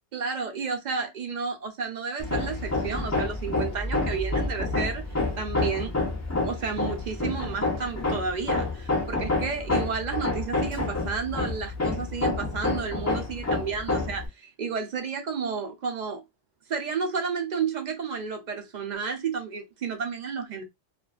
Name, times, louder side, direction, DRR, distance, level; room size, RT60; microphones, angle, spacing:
voice 1, 0.1-5.0 5.4-5.9 6.4-16.2 16.7-20.6, right 5 dB, 55° right, 0.5 m, -31 dB
Hammer, 2.2-14.3, left 3 dB, 25° left, 0.3 m, -28 dB
2.4 x 2.3 x 2.3 m
omnidirectional pair, 1.2 m